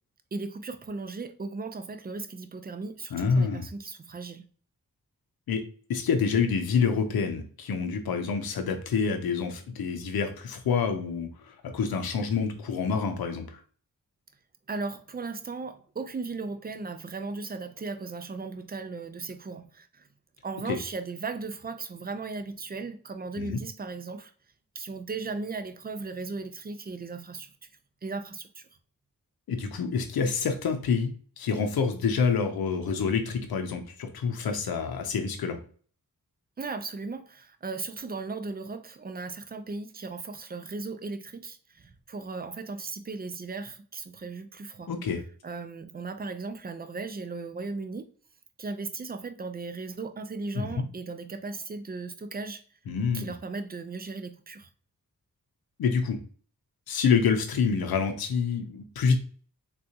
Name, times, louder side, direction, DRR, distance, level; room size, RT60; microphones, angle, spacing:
voice 1, 0.3-4.5 14.7-20.1 20.4-24.3 24.7-27.7 28.0-28.7 36.6-44.9 45.4-48.1 48.6-52.6 53.1-54.7, right 3 dB, 25° right, 0.5 m, -37 dB
voice 2, 3.1-3.7 5.5-5.6 5.9-13.6 20.7-20.8 23.4-23.6 29.5-35.6 44.9-45.2 50.5-50.8 52.9-53.3 55.8-56.2 56.9-59.2, left 5 dB, 85° left, 0.7 m, -27 dB
3.6 x 2.4 x 2.8 m
cardioid pair, 50°, 35 cm